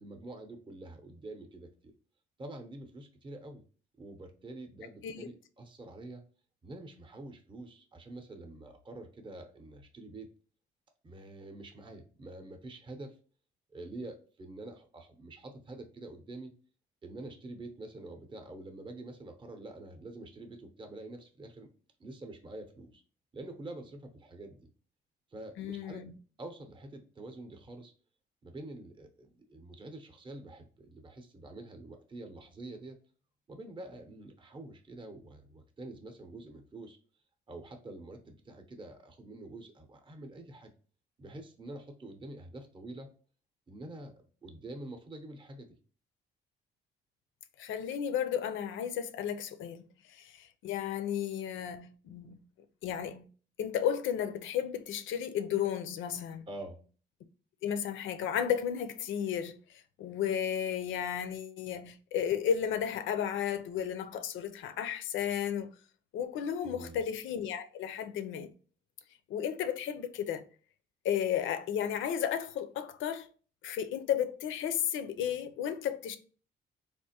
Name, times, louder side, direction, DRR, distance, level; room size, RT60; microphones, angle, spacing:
voice 1, 0.0-1.9 2.4-3.6 4.0-6.2 6.6-10.3 11.0-13.2 13.7-16.5 17.0-21.7 22.0-23.0 23.3-24.7 25.3-26.0 26.4-27.9 28.4-33.0 33.5-37.0 37.5-40.7 41.2-43.1 43.7-45.8 56.5-56.8 66.6-67.0, right 2 dB, 25° right, 0.6 m, -46 dB
voice 2, 25.6-26.1 47.6-52.4 52.8-53.3 53.6-56.4 57.6-65.7 66.1-68.5 69.3-70.4 71.0-73.3 73.6-76.2, left 9 dB, 75° left, 0.5 m, -33 dB
3.5 x 2.5 x 2.7 m
cardioid pair, 90°, 20 cm